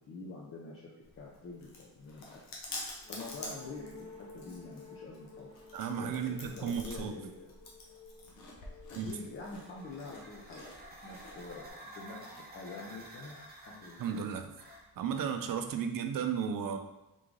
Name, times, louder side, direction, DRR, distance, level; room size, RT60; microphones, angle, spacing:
voice 1, 0.1-2.4 3.1-5.5 6.0-6.2 6.5-7.6 8.9-10.7 11.0-13.3 13.7-14.1, left 3 dB, 35° left, -3 dB, 0.5 m, -46 dB
Chewing mastication, 1.0-11.7, left 2 dB, 60° left, 0.9 m, -48 dB
sound 1, 3.0-10.7, left 3 dB, 10° left, 1.2 m, -54 dB
voice 2, 5.7-7.1 9.0-9.1 14.0-14.5 15.0-16.8, right 7 dB, 65° right, 7 dB, 0.5 m, -34 dB
sound 2, 9.5-15.7, right 1 dB, 25° right, 0.8 m, -51 dB
3.7 x 3.1 x 3.7 m, 1.0 s
wide cardioid pair, 170°, 38 cm